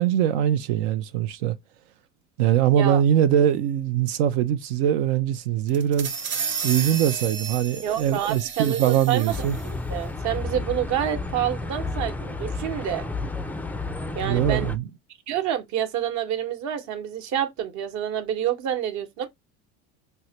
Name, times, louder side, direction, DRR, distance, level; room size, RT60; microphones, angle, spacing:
voice 1, 0.0-1.6 2.4-6.1 6.6-9.6 14.2-14.8, right 10 dB, 80° right, 0.5 m, -22 dB
sound 1, 5.7-9.7, right 6 dB, 35° right, 0.9 m, -32 dB
voice 2, 7.8-9.3 9.6-13.1 14.1-14.7 15.3-19.3, right 10 dB, 60° right, 1.0 m, -28 dB
sound 2, 9.3-14.8, left 3 dB, 5° left, 0.3 m, -31 dB
4.6 x 2.1 x 2.7 m
supercardioid pair, 95°, 32 cm